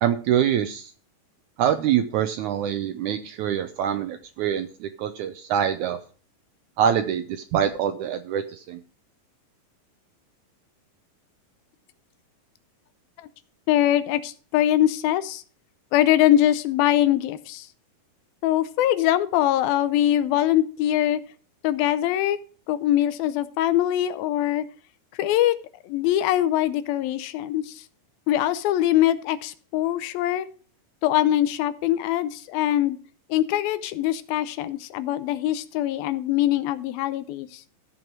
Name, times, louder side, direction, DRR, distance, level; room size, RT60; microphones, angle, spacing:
voice 1, 0.0-0.9 1.6-6.0 6.8-8.8, right 9 dB, 80° right, 8 dB, 1.8 m, -25 dB
voice 2, 13.7-15.4 15.9-17.7 18.4-21.2 21.6-22.4 22.7-24.6 25.2-25.6 25.8-27.8 28.3-30.5 31.0-33.0 33.3-37.6, left 12 dB, 85° left, 13 dB, 2.6 m, -22 dB
15.0 x 5.5 x 4.5 m, 0.40 s
omnidirectional pair, 4.1 m